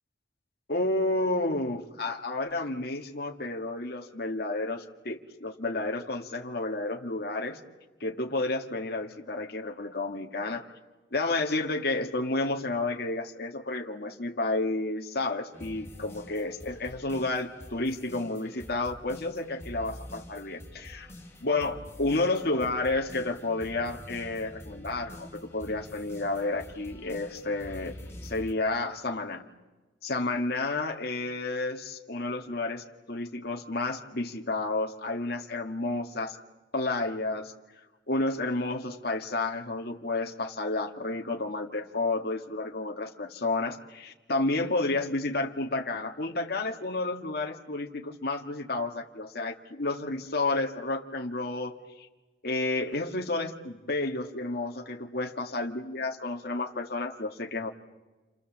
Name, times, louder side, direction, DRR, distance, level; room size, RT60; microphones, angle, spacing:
voice 1, 0.7-7.6 8.0-10.7 11.1-21.1 21.4-27.9 28.2-29.4 30.0-36.4 36.7-37.5 38.1-52.1 52.4-57.7, left 2 dB, 60° left, 2 dB, 1.7 m, -31 dB
sound 1, 15.5-28.5, left 1 dB, 15° left, 4.7 m, -46 dB
29.5 x 25.5 x 7.4 m, 1.2 s
head